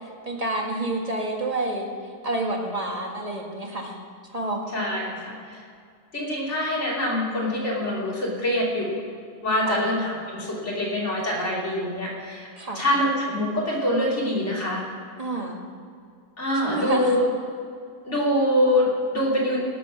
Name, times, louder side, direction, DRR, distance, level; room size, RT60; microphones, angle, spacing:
voice 1, 0.2-1.9 2.2-4.0 4.3-4.6 9.7-9.8 12.6-12.8 15.2-15.6 16.5-17.2, right 2 dB, 25° right, 0 dB, 1.6 m, -28 dB
voice 2, 4.7-5.6 6.1-8.9 9.4-12.5 12.7-14.8 16.4-17.3 18.1-19.6, left 1 dB, 40° left, -5 dB, 3.2 m, -24 dB
18.0 x 6.9 x 6.2 m, 2.3 s
omnidirectional pair, 1.8 m